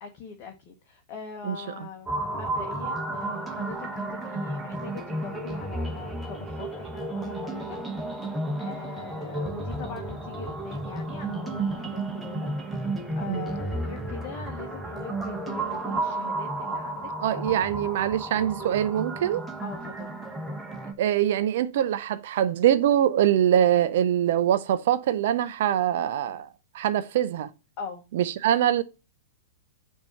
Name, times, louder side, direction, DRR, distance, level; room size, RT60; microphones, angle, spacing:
voice 1, 0.0-7.8 8.2-17.6 19.6-20.2 27.8-28.0, left 6 dB, 40° left, 1.0 m, -42 dB
sound 1, 2.1-20.9, right 2 dB, 5° right, 1.1 m, -32 dB
voice 2, 17.2-19.4 21.0-26.5 26.7-27.5 28.1-28.8, right 10 dB, 55° right, 0.5 m, -23 dB
6.8 x 2.8 x 5.7 m
figure-of-eight pair, 100°, 0 cm